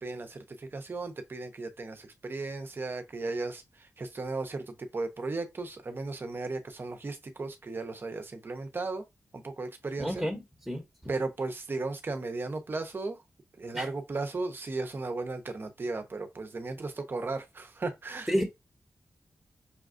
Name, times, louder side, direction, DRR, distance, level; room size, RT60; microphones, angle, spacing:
voice 1, 0.0-9.0 9.3-10.3 11.1-13.2 13.6-18.3, right 3 dB, 45° right, 0.7 m, -36 dB
voice 2, 10.0-10.4 10.7-10.8 13.7-13.8 18.3-18.4, equal, 5° right, 1.0 m, -29 dB
5.6 x 2.3 x 2.5 m
wide cardioid pair, 85°, 5 cm